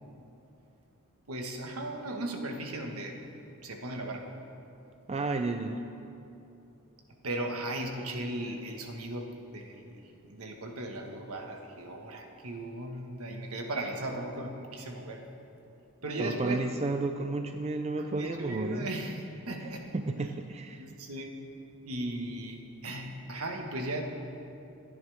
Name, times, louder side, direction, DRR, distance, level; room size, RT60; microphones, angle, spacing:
voice 1, 1.3-3.2 3.6-4.3 7.2-15.2 16.0-16.6 18.0-20.3 20.8-21.4 21.8-24.0, right 1 dB, 70° right, 3 dB, 1.5 m, -37 dB
voice 2, 5.1-5.8 16.2-18.9 19.9-20.9, right 3 dB, 30° right, 6 dB, 0.5 m, -32 dB
24.5 x 9.9 x 3.5 m, 2.7 s
head